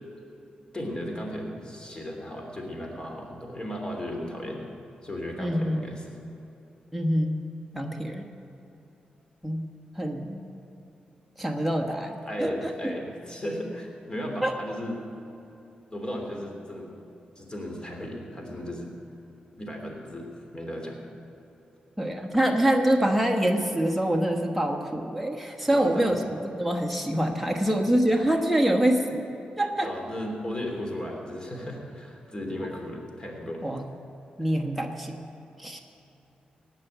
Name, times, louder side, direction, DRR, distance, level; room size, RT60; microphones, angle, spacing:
voice 1, 0.7-4.7 5.0-6.2 12.2-15.0 15.9-16.9 17.4-18.9 19.5-21.0 25.7-26.2 29.8-33.7 35.7-35.8, equal, 30° left, 1 dB, 3.1 m, -35 dB
voice 2, 5.4-5.8 6.9-7.4 7.7-8.3 9.4-9.7 9.9-10.5 11.4-12.9 14.4-14.5 22.0-29.2 29.6-29.9 33.6-33.9 34.4-35.2 35.6-35.8, right 1 dB, ahead, 2 dB, 1.2 m, -25 dB
17.0 x 6.0 x 9.1 m, 3.0 s
cardioid pair, 70°, 3 cm